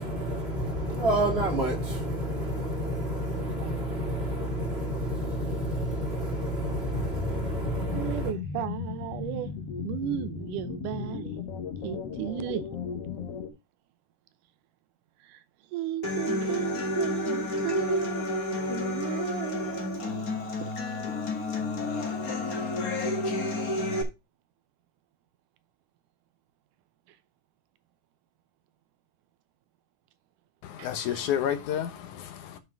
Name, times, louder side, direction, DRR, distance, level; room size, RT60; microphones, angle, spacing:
voice 1, 0.0-8.3, right 1 dB, 25° right, 1.7 m, -29 dB
voice 2, 3.4-3.8 7.9-9.5 9.8-11.4 11.8-12.6 15.2-15.4 15.7-18.3 18.7-20.2 20.6-20.7 30.8-31.3, right 13 dB, 80° right, 2.2 m, -35 dB
sound 1, 6.9-13.5, left 6 dB, 55° left, 2.1 m, -36 dB
Human voice / Acoustic guitar, 16.0-24.0, left 2 dB, 35° left, 1.6 m, -30 dB
voice 3, 30.6-32.6, left 9 dB, 70° left, 2.4 m, -30 dB
7.6 x 5.7 x 4.6 m
omnidirectional pair, 3.7 m